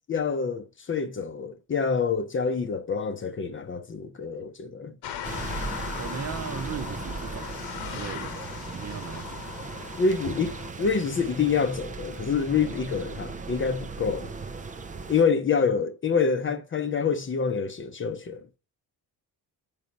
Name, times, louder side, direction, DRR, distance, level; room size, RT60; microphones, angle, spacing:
voice 1, 0.1-4.9 10.0-14.3 15.1-18.4, left 5 dB, 30° left, 0.7 m, -27 dB
sound 1, 5.0-10.7, left 9 dB, 80° left, 1.2 m, -38 dB
sound 2, 5.2-15.2, right 4 dB, 20° right, 0.5 m, -37 dB
voice 2, 5.9-9.4, right 7 dB, 40° right, 0.9 m, -38 dB
9.3 x 5.5 x 5.3 m
cardioid pair, 170°, 39 cm